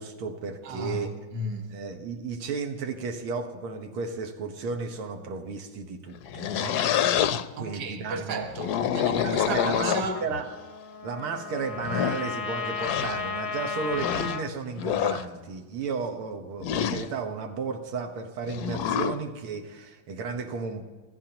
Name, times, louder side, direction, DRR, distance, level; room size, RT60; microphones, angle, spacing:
voice 1, 0.0-1.1 1.7-6.8 7.6-8.5 9.2-10.5 11.0-20.8, right 5 dB, 90° right, 2.2 m, -33 dB
voice 2, 0.6-1.7 7.5-10.3, right 2 dB, 50° right, 1.8 m, -34 dB
sound 1, 6.1-7.4 8.4-10.4 11.2-11.3 11.8-12.2 12.8-13.2 13.9-14.4 14.8-15.2 16.6-17.1 18.5-19.2, left 9 dB, 70° left, 1.0 m, -27 dB
Trumpet, 10.1-14.5, left 5 dB, 35° left, 0.5 m, -34 dB
27.0 x 16.5 x 3.0 m
omnidirectional pair, 2.3 m